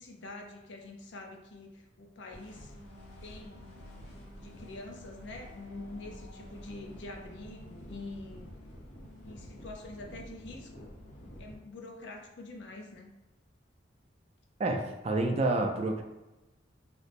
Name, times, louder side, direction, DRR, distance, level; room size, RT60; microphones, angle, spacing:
voice 1, 0.0-2.7 3.2-3.7 4.1-8.5 9.2-10.9 11.4-13.1, left 2 dB, 65° left, 2 dB, 0.5 m, -46 dB
sound 1, 2.3-11.6, equal, 90° left, 0.9 m, -49 dB
voice 2, 14.6-16.0, right 2 dB, 35° right, 3 dB, 0.3 m, -28 dB
3.0 x 2.0 x 4.1 m, 1.0 s
head